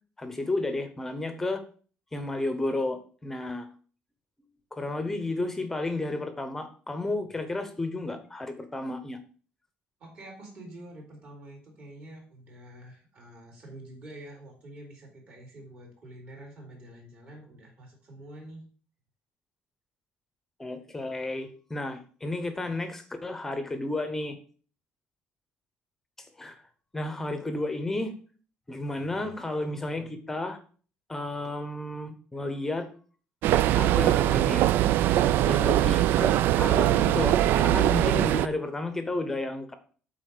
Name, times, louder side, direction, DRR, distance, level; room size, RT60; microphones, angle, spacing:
voice 1, 0.2-1.6 2.1-3.7 4.7-9.2 20.6-24.4 26.2-26.6 26.9-28.1 28.7-30.6 31.1-32.9 33.7-34.7 35.1-39.7, left 2 dB, 10° left, 8 dB, 0.8 m, -32 dB
voice 2, 10.0-18.6, right 1 dB, 40° right, -1 dB, 3.5 m, -47 dB
sound 1, 33.4-38.5, right 13 dB, 65° right, 0.3 m, -22 dB
8.2 x 4.2 x 6.6 m, 0.41 s
cardioid pair, 175°, 4 cm